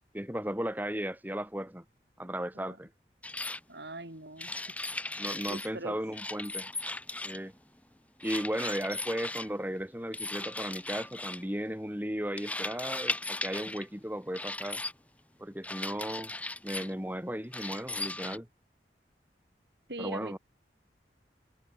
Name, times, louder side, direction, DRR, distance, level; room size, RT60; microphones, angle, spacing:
voice 1, 0.1-1.8 2.2-2.9 5.2-6.7 7.2-7.5 8.2-14.8 15.4-16.3 16.6-18.5 20.0-20.4, equal, 10° right, 2.5 m, -35 dB
sound 1, 3.2-3.6 4.4-5.7 6.1-7.5 8.2-9.5 10.1-11.4 12.4-13.9 14.3-14.9 15.6-16.9 17.5-18.4, left 2 dB, 10° left, 2.0 m, -37 dB
voice 2, 3.7-4.5 5.5-6.0 19.9-20.4, right 2 dB, 70° right, 5.7 m, -41 dB
head